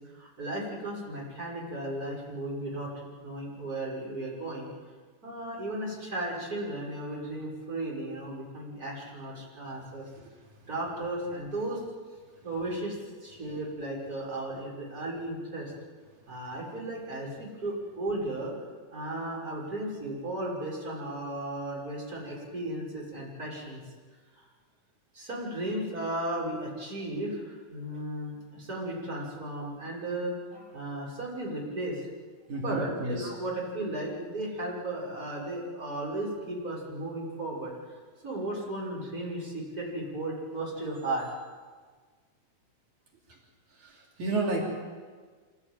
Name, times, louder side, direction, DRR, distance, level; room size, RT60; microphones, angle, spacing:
voice 1, 0.1-4.7 5.2-10.0 10.7-11.8 12.4-13.0 13.2-15.7 16.3-18.6 18.9-23.8 24.4-24.5 25.1-32.1 32.5-37.7 38.2-41.3, right 1 dB, 30° right, -4 dB, 6.6 m, -35 dB
voice 2, 32.5-33.3 43.8-44.7, right 2 dB, 90° right, -2 dB, 5.0 m, -31 dB
26.0 x 16.5 x 9.2 m, 1.5 s
omnidirectional pair, 3.3 m